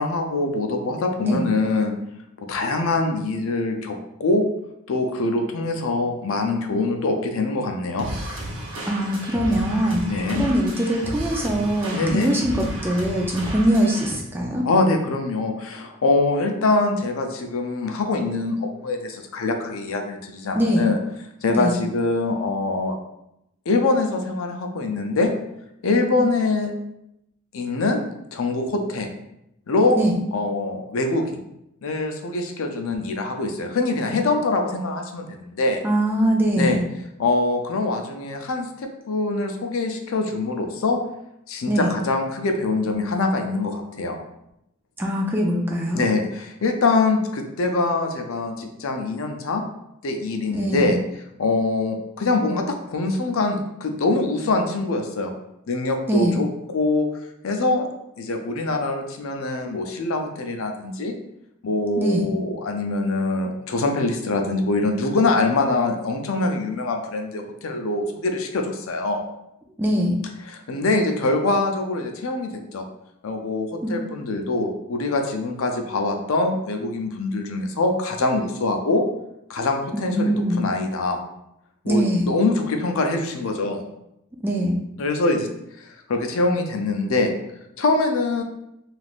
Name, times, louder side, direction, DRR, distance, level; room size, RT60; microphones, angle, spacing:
voice 1, 0.0-1.9 2.5-4.5 4.9-8.1 10.1-10.5 11.9-12.3 14.6-21.0 21.4-23.0 23.7-25.3 25.8-26.7 27.5-28.0 28.3-29.1 29.7-30.0 30.3-31.4 31.8-35.8 36.5-36.8 37.2-41.0 41.5-44.2 45.9-49.6 50.0-51.0 51.4-55.3 55.7-56.5 56.7-57.1 57.4-57.9 58.2-61.1 61.6-69.2 70.5-72.8 73.2-79.0 79.5-81.2 81.8-83.8 85.0-85.5 85.8-87.3 87.8-88.4, left 2 dB, 70° left, 4 dB, 0.4 m, -24 dB
sound 1, 8.0-14.1, right 1 dB, 60° right, 0.7 m, -32 dB
voice 2, 8.9-10.0 10.4-14.7 20.5-20.9 21.5-21.8 30.0-30.1 35.8-36.8 41.6-41.9 45.0-46.0 50.5-50.9 56.1-56.4 62.0-62.3 69.8-70.2 73.8-73.9 79.9-80.6 81.9-82.3 84.4-84.8, equal, 10° right, -1 dB, 0.3 m, -22 dB
3.4 x 2.4 x 2.4 m, 0.82 s
head